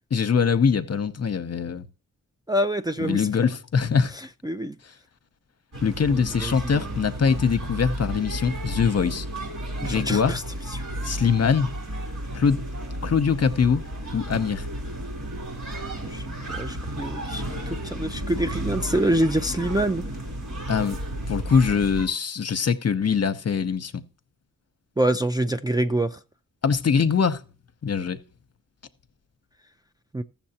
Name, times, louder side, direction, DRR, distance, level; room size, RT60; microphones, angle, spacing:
voice 1, 0.1-1.9 3.0-4.1 5.8-9.3 9.8-10.4 11.0-11.7 12.3-12.6 13.0-13.8 14.1-14.7 20.7-21.0 21.3-24.0 26.6-27.4 27.8-28.2, left 6 dB, 50° left, 0.8 m, -23 dB
voice 2, 2.5-3.3 4.4-4.8 6.1-6.9 9.8-10.4 10.7-10.8 16.1-20.0 25.0-26.2 30.1-30.2, right 1 dB, 10° right, 0.4 m, -26 dB
sound 1, 5.7-22.1, right 1 dB, 60° right, 3.5 m, -33 dB
14.5 x 7.2 x 2.9 m
cardioid pair, 60°, 34 cm